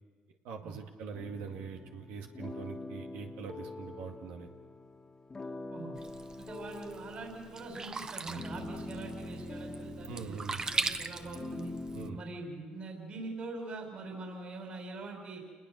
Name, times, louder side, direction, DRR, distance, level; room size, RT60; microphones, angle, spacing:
voice 1, 0.4-4.5 10.1-10.6 11.9-12.2, right 6 dB, 85° right, 3 dB, 2.2 m, -43 dB
sound 1, 1.1-12.2, left 2 dB, 25° left, 1.9 m, -44 dB
Sink (filling or washing), 6.0-12.1, right 4 dB, 25° right, 1.0 m, -40 dB
voice 2, 6.4-11.7 12.1-15.4, right 3 dB, 45° right, 2 dB, 5.7 m, -43 dB
28.0 x 20.5 x 6.4 m, 1.5 s
cardioid pair, 95°, 3 cm